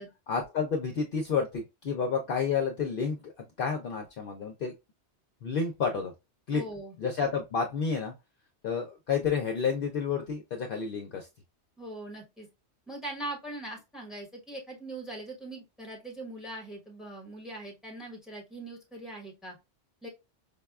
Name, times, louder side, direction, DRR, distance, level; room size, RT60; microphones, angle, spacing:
voice 1, 0.3-3.3 3.6-4.7 5.4-6.1 6.5-6.6 7.0-8.1 8.6-11.3, left 5 dB, 60° left, 3 dB, 0.6 m, -30 dB
voice 2, 6.5-6.9 11.8-12.5 12.9-19.6 20.0-20.1, right 1 dB, ahead, -1 dB, 1.0 m, -41 dB
5.2 x 2.2 x 2.2 m, 0.24 s
omnidirectional pair, 1.2 m